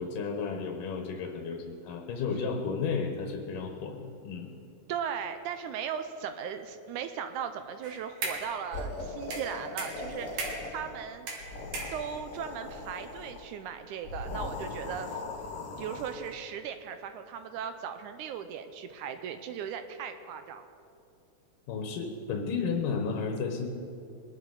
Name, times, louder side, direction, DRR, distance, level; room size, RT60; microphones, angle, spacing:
voice 1, 0.0-4.5 21.7-23.7, left 5 dB, 80° left, 3 dB, 2.6 m, -33 dB
voice 2, 4.9-11.3 11.9-15.2 15.8-20.7, right 8 dB, 80° right, 9 dB, 2.0 m, -37 dB
sound 1, 7.8-8.6 9.3-10.8 11.3-12.4, right 3 dB, 65° right, 2.9 m, -37 dB
sound 2, 8.7-11.0 11.3-13.5 14.0-16.3, left 2 dB, 50° left, 2.2 m, -39 dB
22.0 x 11.5 x 3.9 m, 2.5 s
omnidirectional pair, 3.8 m